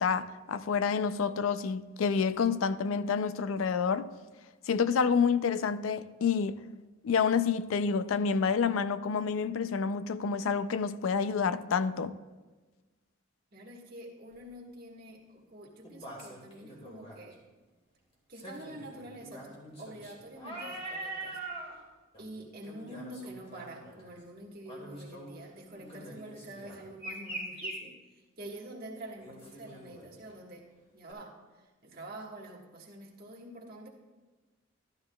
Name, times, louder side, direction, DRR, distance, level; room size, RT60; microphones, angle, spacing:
voice 1, 0.0-4.1 4.7-6.6 7.0-12.2, left 6 dB, 90° left, 0.4 m, -28 dB
voice 2, 13.5-17.4 18.3-21.4 22.2-33.9, right 1 dB, 50° right, 1.5 m, -47 dB
sound 1, 14.3-14.4 15.8-17.2 18.3-21.7 22.1-22.3 22.6-24.1 24.6-25.3 25.7-27.8 29.2-30.3 31.1-31.2, right 2 dB, 30° left, 2.1 m, -43 dB
13.5 x 11.5 x 2.3 m
head